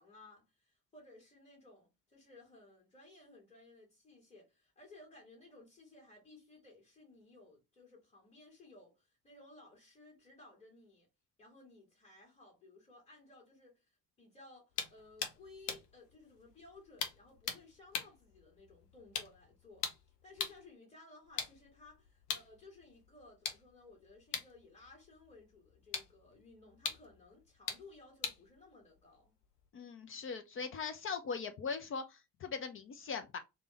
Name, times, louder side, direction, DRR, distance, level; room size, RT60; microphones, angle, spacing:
voice 1, 0.0-11.1 11.4-29.3, left 2 dB, 15° left, 1.9 m, -58 dB
sound 1, 14.7-20.7 21.2-29.7, left 6 dB, 75° left, 0.7 m, -44 dB
voice 2, 29.7-33.4, left 5 dB, 30° left, 0.5 m, -40 dB
3.4 x 2.9 x 3.2 m
figure-of-eight pair, 50°, 47 cm